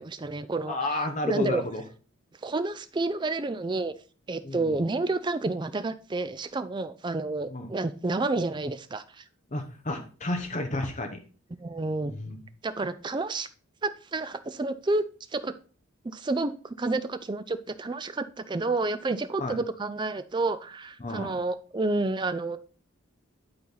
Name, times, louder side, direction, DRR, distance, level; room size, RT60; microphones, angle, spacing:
voice 1, 0.0-0.8 1.2-1.6 2.4-3.9 4.3-9.2 11.6-12.1 12.6-13.5 13.8-15.0 15.3-15.5 16.0-22.6, right 3 dB, 20° right, 12 dB, 0.4 m, -30 dB
voice 2, 0.7-1.8 4.4-4.8 7.5-7.7 9.5-11.2 12.0-12.4 19.4-19.6 21.0-21.4, left 2 dB, 35° left, 5 dB, 0.9 m, -31 dB
11.0 x 4.2 x 4.0 m, 0.39 s
head